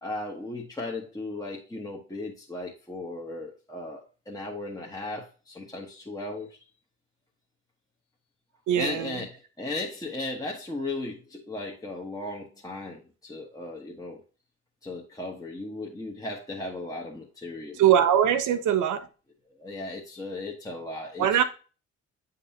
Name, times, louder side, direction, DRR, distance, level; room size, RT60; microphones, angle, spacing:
voice 1, 0.0-4.0 4.3-6.6 8.7-14.2 14.8-17.8 18.5-18.6 19.6-21.4, left 2 dB, 10° left, 1.1 m, -36 dB
voice 2, 8.7-9.2 17.8-19.1 21.2-21.4, right 10 dB, 80° right, 0.9 m, -22 dB
8.3 x 5.4 x 2.7 m
cardioid pair, 90°, 30 cm